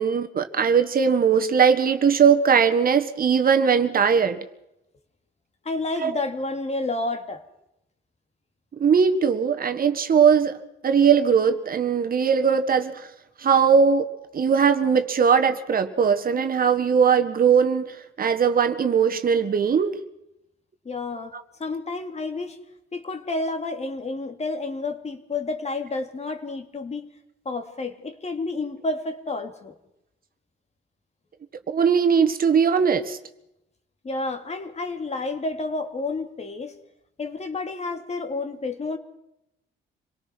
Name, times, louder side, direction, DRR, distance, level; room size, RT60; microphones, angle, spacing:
voice 1, 0.0-4.4 6.0-6.1 8.8-10.5 10.8-13.1 13.4-14.1 14.3-20.0 31.7-33.2, right 6 dB, 45° right, 8 dB, 1.6 m, -20 dB
voice 2, 5.6-7.4 20.8-21.3 21.6-22.6 22.9-27.1 27.4-29.7 34.0-36.8 37.2-39.0, left 3 dB, 35° left, 7 dB, 2.6 m, -30 dB
26.5 x 18.5 x 6.1 m, 0.85 s
cardioid pair, 90°, 20 cm